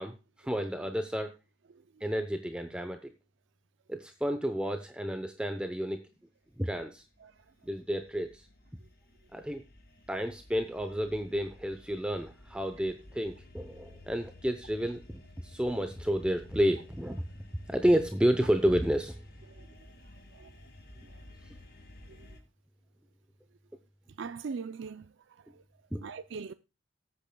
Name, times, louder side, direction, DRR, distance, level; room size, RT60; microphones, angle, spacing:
voice 1, 0.0-1.3 2.0-3.1 3.9-6.0 6.6-7.0 7.7-8.5 9.3-9.6 10.1-17.2 17.7-19.2 25.9-26.0, equal, 5° right, 0.7 m, -30 dB
sound 1, 6.5-22.4, left 1 dB, 45° left, 2.2 m, -54 dB
voice 2, 24.2-25.6 26.0-26.5, right 5 dB, 60° right, 0.4 m, -41 dB
19.0 x 8.5 x 2.3 m
head